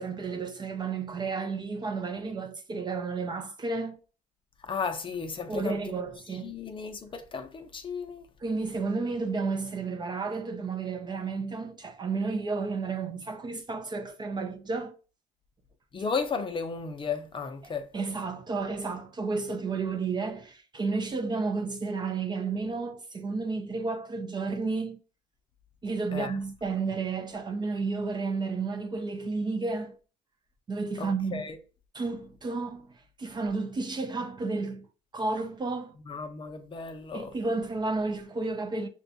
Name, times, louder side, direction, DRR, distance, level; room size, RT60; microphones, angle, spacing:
voice 1, 0.0-4.0 5.5-6.5 8.4-14.9 17.6-25.0 25.8-30.0 30.7-31.4 31.9-34.9 35.1-36.0 37.1-38.9, right 4 dB, 25° right, 0.4 m, -32 dB
voice 2, 4.6-6.0 6.4-8.3 15.9-17.9 26.1-26.4 31.0-31.6 36.1-37.3, left 5 dB, 30° left, 0.5 m, -34 dB
5.8 x 2.2 x 2.7 m
cardioid pair, 110°, 17 cm